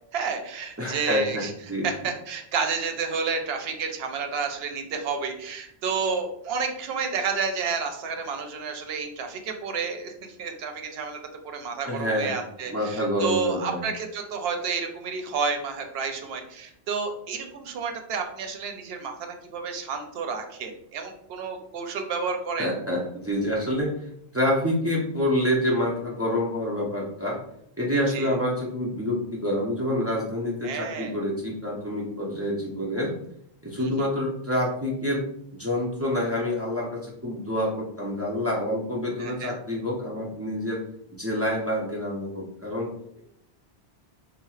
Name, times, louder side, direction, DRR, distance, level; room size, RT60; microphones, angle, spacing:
voice 1, 0.1-1.5 1.8-22.7 28.1-28.4 30.6-31.2 33.8-34.1 39.2-39.5, right 5 dB, 70° right, 4 dB, 0.8 m, -30 dB
voice 2, 0.8-1.4 1.7-1.9 11.9-12.3 12.7-13.8 22.6-23.9 24.3-27.4 27.8-33.1 33.6-35.2 35.5-40.8 41.1-42.9, left 1 dB, 25° right, -4 dB, 0.3 m, -27 dB
4.2 x 2.0 x 2.3 m, 0.73 s
omnidirectional pair, 1.1 m